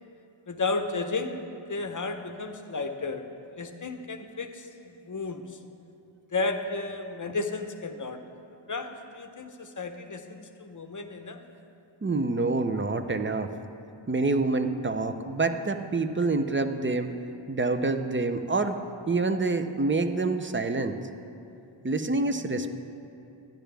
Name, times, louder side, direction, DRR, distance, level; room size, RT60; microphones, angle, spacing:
voice 1, 0.5-3.2 3.6-5.6 6.3-8.2 8.7-11.5, left 3 dB, 40° left, 7 dB, 0.8 m, -33 dB
voice 2, 12.0-13.5 14.1-17.1 17.5-18.8 19.1-21.0 21.8-22.7, right 3 dB, 25° right, 8 dB, 0.6 m, -27 dB
12.0 x 10.0 x 3.4 m, 2.8 s
wide cardioid pair, 50°, 49 cm